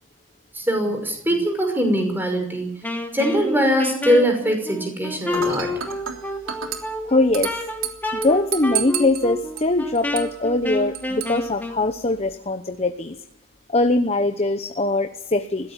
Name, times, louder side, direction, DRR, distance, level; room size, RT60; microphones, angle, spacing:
voice 1, 0.5-2.7 3.1-5.8, equal, 10° right, 4 dB, 5.8 m, -22 dB
Wind instrument woodwind instrument, 2.8-11.8, left 1 dB, 10° left, 2.8 m, -29 dB
Dishes pots and pans / Glass, 5.3-12.3, right 10 dB, 75° right, 3.3 m, -33 dB
voice 2, 7.1-7.6 8.1-13.2 13.7-15.7, left 2 dB, 30° left, 8 dB, 1.0 m, -22 dB
21.0 x 16.5 x 7.4 m, 0.79 s
head